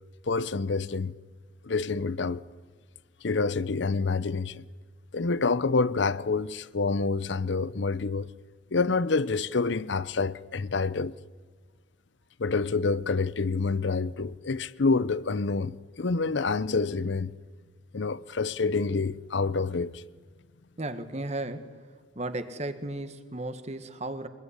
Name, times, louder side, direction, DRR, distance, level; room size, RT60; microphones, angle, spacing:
voice 1, 0.3-1.1 1.6-2.4 3.2-4.6 5.1-8.3 8.7-11.1 12.4-17.3 17.9-20.0, left 4 dB, 65° left, 0.7 m, -27 dB
voice 2, 20.8-21.7 22.1-24.3, right 2 dB, 35° right, 1.6 m, -34 dB
24.5 x 21.5 x 10.0 m
head